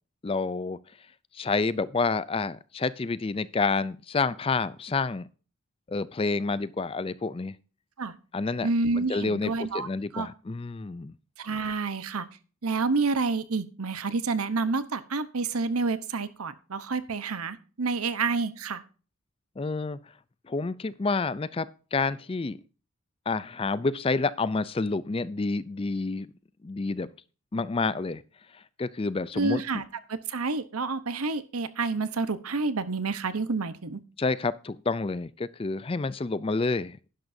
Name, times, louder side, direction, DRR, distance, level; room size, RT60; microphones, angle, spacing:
voice 1, 0.2-0.8 1.3-5.3 5.9-7.6 8.3-8.7 9.0-11.1 19.6-20.0 20.5-22.6 23.3-26.3 26.6-27.1 27.5-28.2 28.5-29.6 34.2-37.0, left 3 dB, 25° left, 17 dB, 0.4 m, -29 dB
voice 2, 8.6-9.9 10.1-10.3 11.4-12.3 12.6-18.8 29.3-29.8 30.1-34.0, right 3 dB, 85° right, 13 dB, 1.0 m, -29 dB
11.5 x 10.5 x 2.7 m, 0.37 s
head